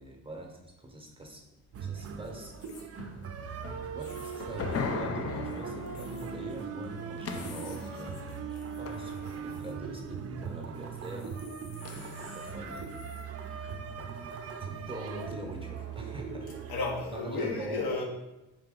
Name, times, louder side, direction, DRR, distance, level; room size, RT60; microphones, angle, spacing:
voice 1, 0.0-1.4 1.8-2.5 3.9-8.3 8.8-11.4 11.9-13.0 14.0-14.2 14.6-16.5 17.1-18.0, right 1 dB, 15° right, 2 dB, 0.9 m, -43 dB
sound 1, 1.7-17.0, right 6 dB, 40° right, 0.5 m, -40 dB
sound 2, 2.5-2.9 4.0-4.6 5.9-6.3 7.2-9.7 11.0-13.2, left 5 dB, 85° left, 0.8 m, -54 dB
sound 3, 3.0-9.9 11.8-12.9 13.5-13.7 14.2-14.3 15.3-15.4 15.8-15.9, left 4 dB, 40° left, 0.5 m, -40 dB
voice 2, 16.7-18.0, left 3 dB, 70° left, -1 dB, 1.2 m, -32 dB
4.5 x 2.8 x 3.8 m, 0.98 s
supercardioid pair, 70°, 38 cm